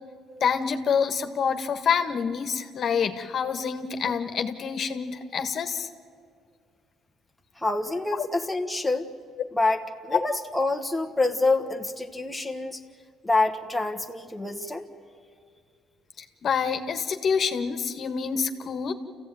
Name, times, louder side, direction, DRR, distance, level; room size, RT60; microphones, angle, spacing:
voice 1, 0.4-5.9 8.2-8.3 10.1-10.2 16.4-18.9, left 6 dB, 50° left, 7 dB, 1.5 m, -27 dB
voice 2, 7.6-9.1 9.5-12.8 13.2-14.9, left 2 dB, 5° left, 2 dB, 1.3 m, -26 dB
28.5 x 15.5 x 9.2 m, 2.1 s
cardioid pair, 105°, 0 cm